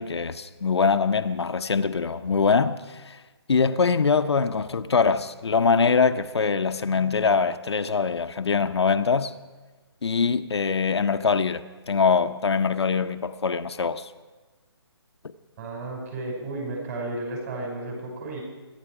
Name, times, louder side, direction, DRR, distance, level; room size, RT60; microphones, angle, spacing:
voice 1, 0.0-3.2 3.5-9.3 10.0-14.1, left 5 dB, 75° left, 0.8 m, -23 dB
voice 2, 15.6-18.4, right 2 dB, 35° right, 6.0 m, -33 dB
23.5 x 11.0 x 4.9 m
hypercardioid pair, 155°, 14 cm